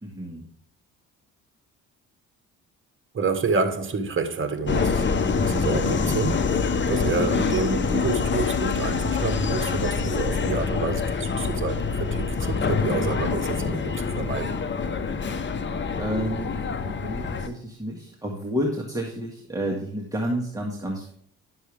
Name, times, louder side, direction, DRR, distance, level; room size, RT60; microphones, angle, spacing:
voice 1, 0.0-0.5 7.1-7.6 16.0-21.1, equal, 10° right, 1.8 m, -30 dB
voice 2, 3.1-5.1 5.5-6.5 6.9-14.5, right 4 dB, 40° right, 1.7 m, -28 dB
Subway metro underground, 4.7-17.5, left 5 dB, 40° left, 1.1 m, -25 dB
11.0 x 7.1 x 3.5 m
cardioid pair, 90°, 30 cm